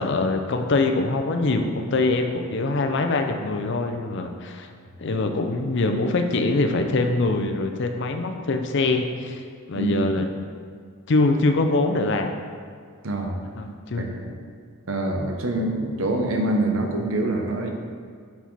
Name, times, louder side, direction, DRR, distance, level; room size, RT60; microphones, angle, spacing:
voice 1, 0.0-4.7 5.0-9.4 9.7-10.3 11.1-12.3 13.6-14.1, left 2 dB, 50° left, 5 dB, 0.5 m, -23 dB
voice 2, 13.0-13.4 14.0-14.3 14.9-17.7, right 1 dB, 65° right, 3 dB, 0.7 m, -25 dB
6.0 x 4.2 x 4.6 m, 2.1 s
head